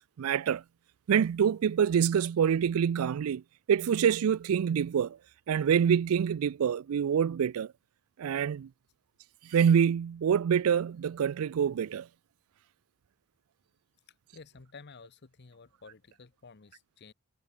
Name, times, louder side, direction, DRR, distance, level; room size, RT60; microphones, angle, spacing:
voice 1, 0.2-0.6 1.1-3.4 3.7-5.2 5.5-7.7 8.2-8.7 9.4-12.1, right 8 dB, 80° right, 0.4 m, -26 dB
voice 2, 14.3-17.1, left 4 dB, 50° left, 0.8 m, -52 dB
head